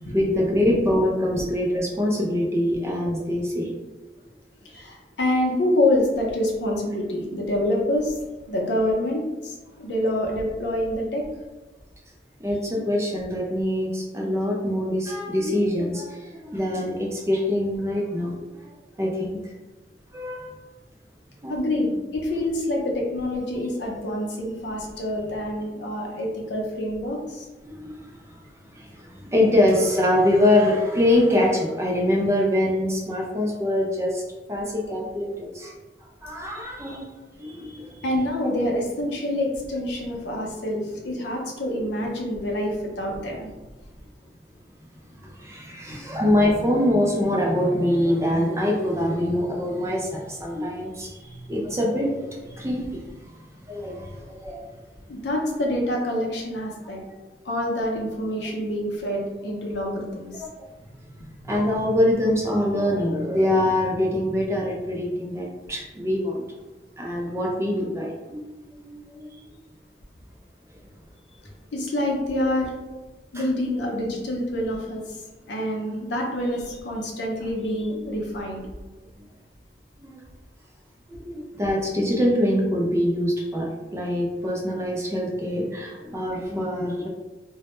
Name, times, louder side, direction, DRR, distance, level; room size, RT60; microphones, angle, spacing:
voice 1, 0.1-3.7 4.7-4.8 12.4-18.7 19.0-19.5 20.1-20.5 21.4-21.6 27.6-28.4 28.7-34.2 34.5-35.7 36.2-37.1 37.4-38.0 38.4-38.5 45.2-53.0 53.6-54.7 60.3-60.5 61.0-66.4 67.0-69.4 73.3-73.5 80.0-80.2 81.1-87.1, left 1 dB, 15° right, -2 dB, 0.4 m, -24 dB
voice 2, 4.7-8.2 8.4-11.2 21.5-27.5 38.0-43.5 55.1-57.0 57.4-60.4 71.7-72.6 73.3-75.2 75.5-78.6, left 1 dB, 80° left, -1 dB, 0.5 m, -26 dB
2.1 x 2.0 x 2.9 m, 1.2 s
head